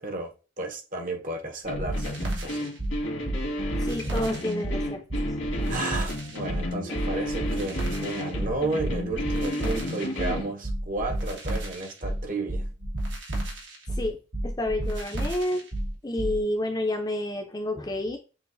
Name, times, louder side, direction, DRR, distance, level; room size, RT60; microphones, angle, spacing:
voice 1, 0.0-2.7 5.7-12.7, right 2 dB, 45° right, 0.9 m, -33 dB
sound 1, 1.7-10.5, left 1 dB, 85° left, 1.7 m, -32 dB
sound 2, 1.7-16.4, right 1 dB, 70° right, 1.4 m, -31 dB
voice 2, 3.8-5.0 9.4-9.7 13.9-15.7 16.0-18.2, left 1 dB, 20° left, 0.5 m, -30 dB
6.9 x 2.6 x 2.6 m
head